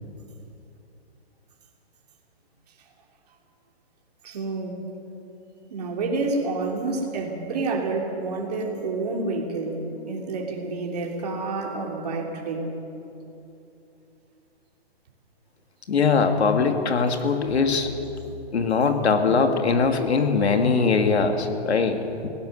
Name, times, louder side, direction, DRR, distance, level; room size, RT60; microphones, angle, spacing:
voice 1, 4.2-4.8 5.7-12.7, right 3 dB, 40° right, 0 dB, 3.0 m, -29 dB
voice 2, 15.9-17.9 18.5-22.3, left 4 dB, 80° left, 6 dB, 2.5 m, -21 dB
24.0 x 17.5 x 6.7 m, 2.9 s
hypercardioid pair, 180°, 32 cm